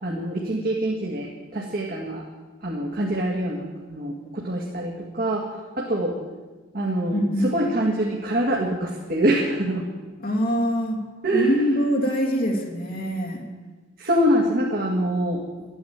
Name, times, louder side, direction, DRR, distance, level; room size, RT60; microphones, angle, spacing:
voice 1, 0.0-2.3 2.6-5.5 5.8-6.2 6.7-9.9 11.2-11.6 14.0-15.4, right 1 dB, 50° right, -2 dB, 2.0 m, -25 dB
voice 2, 7.1-7.5 10.2-11.0 11.3-13.4, equal, 45° left, -1 dB, 2.6 m, -24 dB
13.5 x 10.0 x 8.8 m, 1.3 s
head